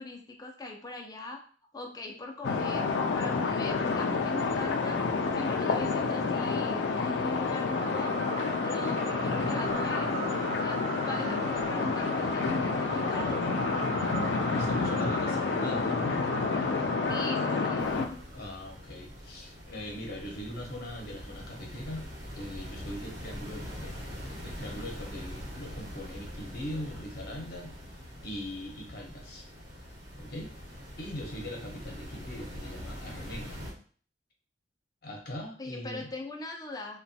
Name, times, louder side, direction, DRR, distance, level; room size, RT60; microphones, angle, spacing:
voice 1, 0.0-1.4 1.7-5.0 5.3-8.1 8.6-10.1 10.6-14.1 17.1-18.2 35.6-37.0, left 2 dB, 20° left, 2 dB, 0.4 m, -40 dB
sound 1, 2.4-18.1, left 4 dB, 85° left, 0.4 m, -29 dB
sound 2, 7.7-18.4, right 5 dB, 35° right, 0.4 m, -39 dB
voice 2, 14.4-16.0 18.3-22.1 22.3-24.0 24.4-27.8 28.2-29.5 30.2-33.6 35.0-36.1, left 1 dB, 60° left, 0 dB, 0.8 m, -41 dB
sound 3, 17.8-33.7, equal, 65° right, 1.0 m, -43 dB
2.9 x 2.2 x 2.7 m, 0.44 s
head